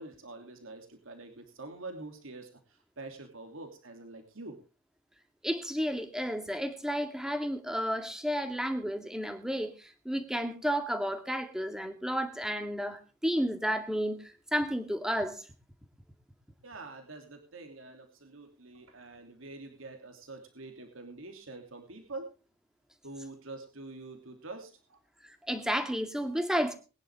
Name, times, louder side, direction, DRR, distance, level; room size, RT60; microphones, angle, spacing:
voice 1, 0.0-4.6 16.6-22.3 23.0-25.0, right 2 dB, 85° right, 4 dB, 3.0 m, -46 dB
voice 2, 5.4-15.5 25.2-26.7, equal, 5° right, 6 dB, 2.0 m, -32 dB
21.5 x 11.0 x 3.6 m, 0.33 s
head